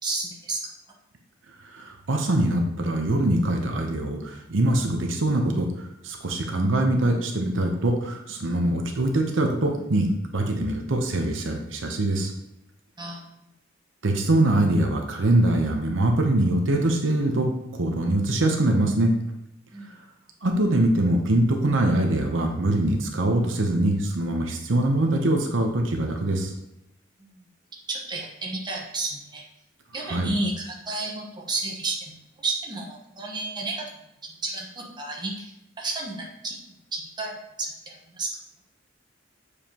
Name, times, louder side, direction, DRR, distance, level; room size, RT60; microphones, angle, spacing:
voice 1, 0.0-0.6 13.0-13.2 19.7-20.0 27.2-27.4 27.9-29.4 29.9-32.1 32.4-33.8 34.3-35.5 35.8-38.3, right 2 dB, 25° right, -2 dB, 1.2 m, -32 dB
voice 2, 1.7-12.3 14.0-19.1 19.9-20.0 20.4-26.5 30.0-30.3, right 1 dB, 75° right, 3 dB, 0.8 m, -23 dB
7.1 x 4.9 x 2.9 m, 0.85 s
head